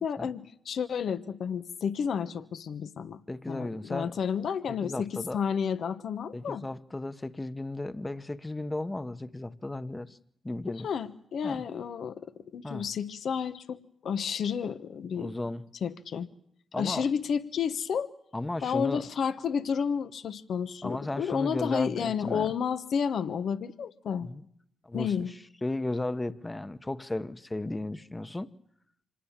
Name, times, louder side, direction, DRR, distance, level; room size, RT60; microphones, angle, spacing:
voice 1, 0.0-3.2 3.5-6.6 10.7-15.3 15.8-16.3 16.7-18.1 18.6-24.3 24.9-25.3, left 7 dB, 70° left, 1.1 m, -31 dB
voice 2, 3.3-4.1 4.7-5.4 6.3-10.2 10.4-10.9 11.4-11.6 12.6-12.9 15.1-15.6 16.7-17.1 18.3-19.0 20.8-22.5 24.2-24.4 24.8-28.5, left 2 dB, 20° left, 1.1 m, -35 dB
26.0 x 20.0 x 7.4 m
supercardioid pair, 60°, 0 cm